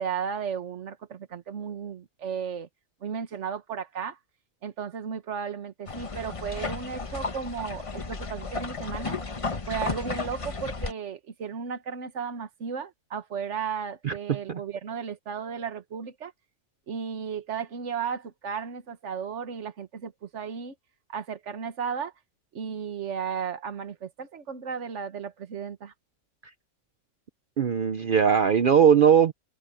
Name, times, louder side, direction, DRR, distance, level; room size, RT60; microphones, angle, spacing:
voice 1, 0.0-2.7 3.0-4.2 4.6-9.2 9.7-16.3 16.9-20.7 21.1-22.1 22.5-25.9, right 7 dB, 70° right, 1.6 m, -34 dB
sound 1, 5.9-10.9, left 4 dB, 30° left, 1.0 m, -33 dB
voice 2, 14.0-14.6 27.6-29.3, right 7 dB, 50° right, 0.7 m, -20 dB
omnidirectional pair, 1.3 m